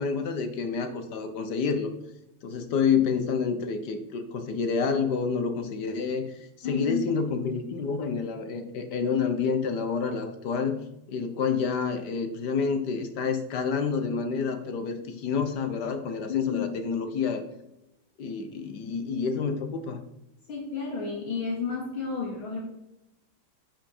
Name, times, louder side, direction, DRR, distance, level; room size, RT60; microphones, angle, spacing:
voice 1, 0.0-1.9 2.4-10.8 11.1-17.5 18.2-20.0, left 5 dB, 60° left, 8 dB, 1.5 m, -28 dB
voice 2, 6.6-7.0 16.3-16.7 20.5-22.6, left 5 dB, 80° left, -3 dB, 3.0 m, -31 dB
10.5 x 6.1 x 4.3 m, 0.87 s
omnidirectional pair, 2.2 m